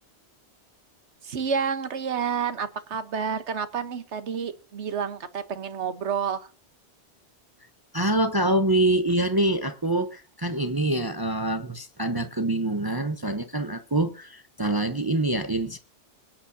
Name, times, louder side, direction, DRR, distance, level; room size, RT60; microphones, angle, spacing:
voice 1, 1.2-6.5, right 6 dB, 80° right, 1.4 m, -29 dB
voice 2, 7.9-15.8, right 1 dB, 25° right, 0.8 m, -25 dB
25.0 x 8.9 x 2.7 m
omnidirectional pair, 1.1 m